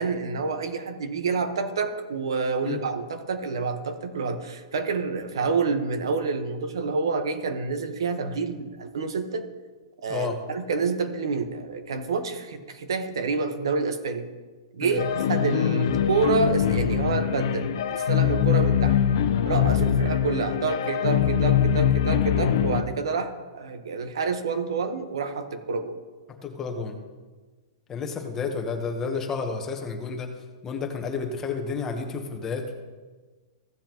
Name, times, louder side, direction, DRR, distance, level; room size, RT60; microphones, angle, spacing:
voice 1, 0.0-9.4 10.0-14.3 14.7-19.0 19.5-26.0, right 4 dB, 85° right, 8 dB, 1.1 m, -28 dB
sound 1, 15.0-22.8, left 9 dB, 60° left, 0.6 m, -23 dB
voice 2, 26.4-26.9 27.9-30.3 30.6-32.7, left 5 dB, 15° left, 3 dB, 1.0 m, -31 dB
15.0 x 7.5 x 3.0 m, 1.3 s
hypercardioid pair, 160°, 2 cm